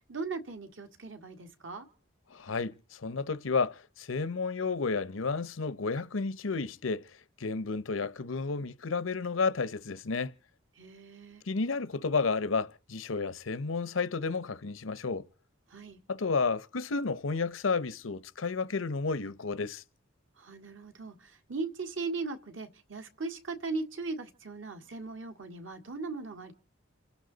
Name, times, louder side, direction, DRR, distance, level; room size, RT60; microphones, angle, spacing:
voice 1, 0.1-1.9 10.8-11.4 15.7-16.0 20.4-26.5, right 3 dB, 70° right, 1.9 m, -38 dB
voice 2, 2.3-7.1 7.4-10.3 11.5-15.3 16.1-19.8, left 4 dB, 85° left, 0.8 m, -31 dB
28.5 x 11.5 x 4.0 m
head